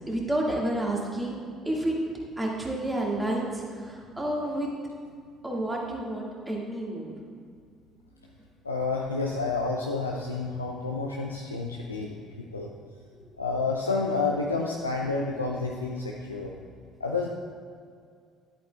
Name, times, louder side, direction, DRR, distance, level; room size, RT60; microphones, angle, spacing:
voice 1, 0.1-1.4 1.7-2.0 2.4-4.7 5.4-7.1, right 1 dB, 10° right, -3 dB, 2.0 m, -30 dB
voice 2, 8.6-12.7 13.4-16.5 17.0-17.3, left 3 dB, 85° left, -1 dB, 0.4 m, -29 dB
11.0 x 8.3 x 2.4 m, 2.2 s
figure-of-eight pair, 50°, 0 cm